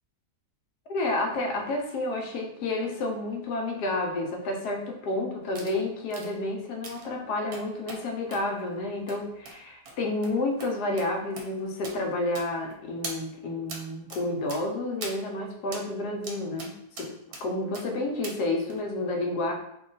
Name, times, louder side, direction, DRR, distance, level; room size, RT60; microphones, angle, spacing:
voice 1, 0.9-17.1 17.4-19.5, left 2 dB, 75° left, 2 dB, 1.2 m, -30 dB
sound 1, 5.6-5.8 6.1-6.3 6.8-7.1 7.5-8.0 8.3-8.5 9.1-9.2 9.5-9.6 9.9-10.0 10.2-10.3 10.6-10.7 11.0-11.1 11.4-11.5 11.8-12.0 12.4-12.7 13.0-13.2 13.7-13.8 14.1-14.2 14.5-14.6 15.0-15.2 15.7-15.9 16.2-16.7 17.0-17.4 17.7-17.9 18.2-18.4 18.7-18.8, right 3 dB, 65° right, 1.1 m, -40 dB
2.9 x 2.4 x 3.8 m, 0.78 s
omnidirectional pair, 1.7 m